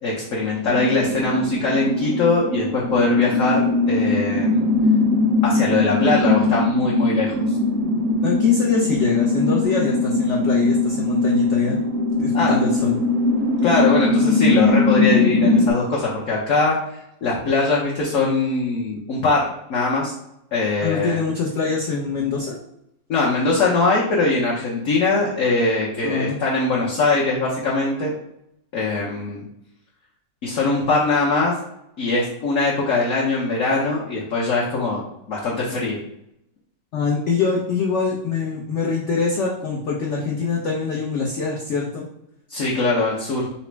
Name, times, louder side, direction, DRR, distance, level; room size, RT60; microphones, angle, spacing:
voice 1, 0.0-4.6 5.4-7.6 12.3-12.6 13.6-19.4 19.7-20.1 20.5-21.2 23.1-28.1 28.7-29.4 30.4-31.5 32.0-35.0 35.3-36.0 42.5-43.5, left 3 dB, 60° left, -4 dB, 0.9 m, -21 dB
sound 1, 0.7-15.7, left 2 dB, 70° right, 0.8 m, -20 dB
voice 2, 8.2-11.8 12.2-13.0 20.8-22.6 26.0-26.4 36.9-42.1, left 4 dB, 85° left, -1 dB, 0.6 m, -24 dB
4.0 x 2.0 x 4.4 m, 0.79 s
omnidirectional pair, 1.9 m